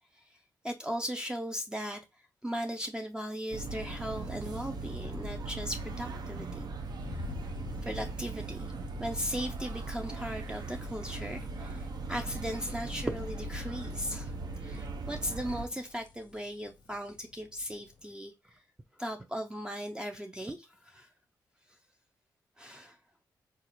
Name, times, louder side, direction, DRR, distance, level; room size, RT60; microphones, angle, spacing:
voice 1, 0.6-2.0 2.4-6.7 7.8-8.7 9.0-14.4 14.6-18.6 19.0-21.1 22.6-23.0, equal, 10° right, 0.4 m, -37 dB
sound 1, 3.5-15.7, right 3 dB, 60° right, 0.5 m, -39 dB
sound 2, 6.8-18.0, left 5 dB, 80° left, 0.5 m, -50 dB
4.0 x 2.4 x 3.0 m
cardioid pair, 60°, 8 cm